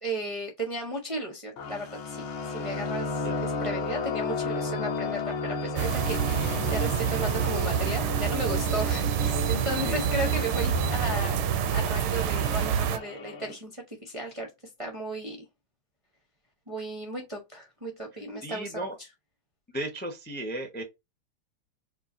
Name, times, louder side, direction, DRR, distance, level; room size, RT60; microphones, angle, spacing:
voice 1, 0.0-11.4 11.7-14.5 14.8-15.4 16.7-18.9, right 1 dB, 25° right, 0.8 m, -35 dB
sound 1, 1.6-13.5, left 4 dB, 80° left, 1.8 m, -34 dB
sound 2, 5.8-13.0, right 9 dB, 85° right, 1.4 m, -27 dB
voice 2, 18.4-19.0 19.7-20.8, right 1 dB, 10° left, 0.6 m, -35 dB
4.8 x 2.9 x 2.6 m
omnidirectional pair, 2.3 m